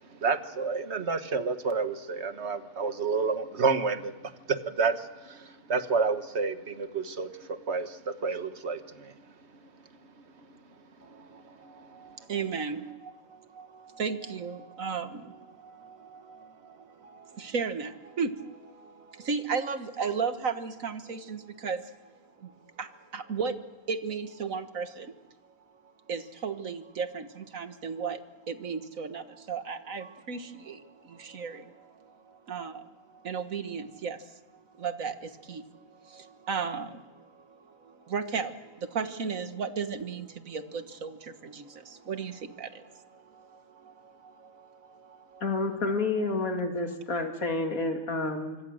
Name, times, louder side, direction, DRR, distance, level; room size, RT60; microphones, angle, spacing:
voice 1, 0.2-9.1, right 4 dB, 55° right, 9 dB, 1.5 m, -30 dB
voice 2, 11.0-21.8 22.4-23.5 23.9-25.1 26.1-34.3 34.8-45.4 46.3-46.4, right 5 dB, 75° right, 9 dB, 1.8 m, -36 dB
voice 3, 45.4-48.6, left 3 dB, 85° left, 4 dB, 2.9 m, -29 dB
26.0 x 24.5 x 6.4 m, 1.2 s
omnidirectional pair, 1.4 m